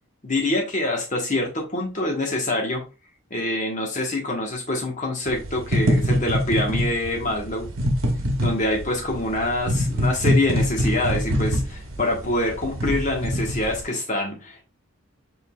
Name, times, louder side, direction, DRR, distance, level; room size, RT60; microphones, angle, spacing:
voice 1, 0.2-2.8 3.3-7.7 8.4-14.6, left 1 dB, 35° left, 1.3 m, -25 dB
sound 1, 5.3-13.8, equal, 70° right, 1.0 m, -24 dB
5.1 x 3.8 x 2.4 m
head